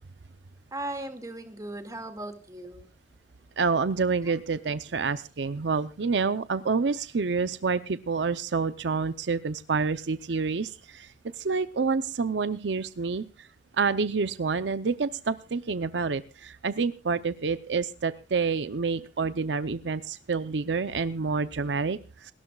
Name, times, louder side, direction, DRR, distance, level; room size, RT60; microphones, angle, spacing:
voice 1, 0.7-2.9 4.2-4.3, right 1 dB, 20° right, 7 dB, 2.0 m, -37 dB
voice 2, 3.6-11.1 11.4-13.2 13.8-22.3, right 4 dB, 75° right, 13 dB, 0.6 m, -28 dB
28.5 x 12.5 x 2.3 m, 0.31 s
head